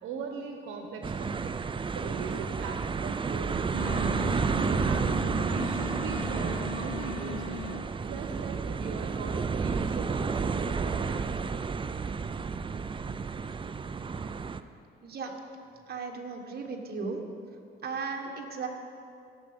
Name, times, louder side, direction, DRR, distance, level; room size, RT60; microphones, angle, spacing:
voice 1, 0.0-1.5 1.9-4.2 4.5-5.2 5.4-7.6 8.0-11.6, right 4 dB, 85° right, 3 dB, 1.0 m, -40 dB
sound 1, 1.0-14.6, right 5 dB, 25° right, 0.5 m, -31 dB
Wind instrument woodwind instrument, 3.7-7.9, left 11 dB, 90° left, 0.6 m, -40 dB
voice 2, 15.0-15.3 15.9-17.2 17.8-18.7, right 4 dB, 50° right, 2 dB, 1.6 m, -36 dB
16.5 x 7.1 x 5.3 m, 2.5 s
cardioid pair, 90°, 20 cm